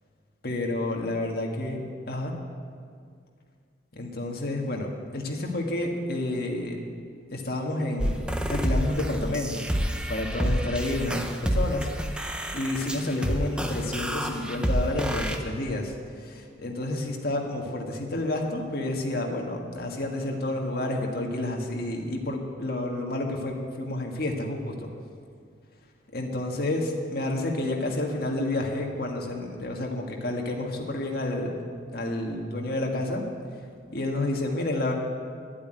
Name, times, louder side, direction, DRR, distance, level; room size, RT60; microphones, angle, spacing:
voice 1, 0.4-1.8 2.1-2.3 3.9-6.8 7.3-9.6 10.1-12.3 12.5-24.9 26.1-31.6 31.9-33.2 33.9-34.9, left 1 dB, 55° left, 1 dB, 1.7 m, -30 dB
sound 1, 8.0-15.4, equal, 5° right, 0.7 m, -28 dB
12.0 x 8.6 x 9.1 m, 2.2 s
head